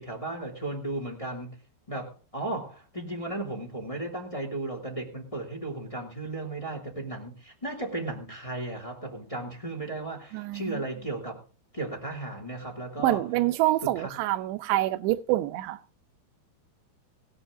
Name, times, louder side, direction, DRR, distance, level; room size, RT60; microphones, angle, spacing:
voice 1, 0.0-1.6 1.9-11.4 11.7-13.2 13.8-14.1, right 2 dB, 10° left, 2.0 m, -35 dB
voice 2, 10.3-10.8 13.0-15.8, right 16 dB, 85° right, 2.9 m, -26 dB
17.0 x 12.0 x 3.7 m
omnidirectional pair, 4.8 m